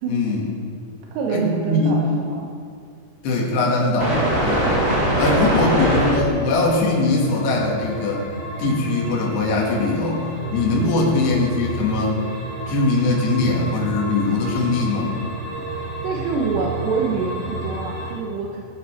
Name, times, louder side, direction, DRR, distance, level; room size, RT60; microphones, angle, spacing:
voice 1, 0.1-0.5 1.3-2.0 3.2-4.7 5.2-8.2 8.6-10.2 10.5-12.1 12.7-15.2, left 3 dB, 70° left, -2 dB, 4.1 m, -21 dB
voice 2, 1.2-2.5 5.4-6.0 10.7-11.1 15.7-18.6, right 5 dB, 80° right, -1 dB, 3.3 m, -26 dB
sound 1, 4.0-18.1, right 1 dB, 30° right, 4.6 m, -26 dB
18.0 x 8.1 x 6.5 m, 2.4 s
omnidirectional pair, 4.9 m